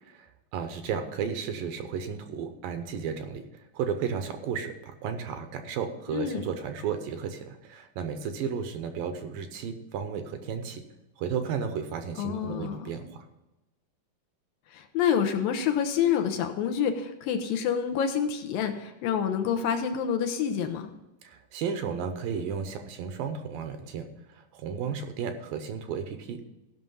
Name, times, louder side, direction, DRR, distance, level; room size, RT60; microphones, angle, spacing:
voice 1, 0.0-10.8 11.2-13.2 21.2-26.4, right 6 dB, 75° right, 7 dB, 2.4 m, -34 dB
voice 2, 6.1-6.4 12.2-12.9 14.7-20.9, left 8 dB, 75° left, 5 dB, 2.4 m, -27 dB
15.0 x 6.0 x 5.5 m, 1.0 s
omnidirectional pair, 4.4 m